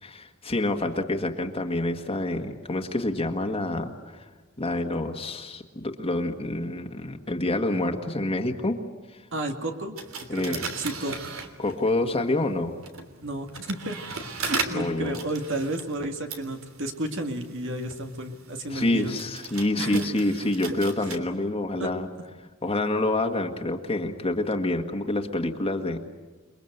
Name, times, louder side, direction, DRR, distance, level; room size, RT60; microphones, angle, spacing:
voice 1, 0.0-4.3 4.6-8.8 9.1-9.2 10.3-10.6 11.6-12.8 14.7-15.2 18.7-22.1 22.6-26.0, left 2 dB, 25° left, 3 dB, 1.7 m, -27 dB
voice 2, 9.3-11.3 13.2-14.0 14.4-19.2 19.8-20.1 20.6-20.7 21.8-21.9, right 1 dB, 65° right, 4 dB, 2.2 m, -32 dB
sound 1, 10.0-12.0 12.7-21.2, right 5 dB, 80° right, 3.2 m, -37 dB
29.5 x 22.0 x 8.0 m, 1.4 s
head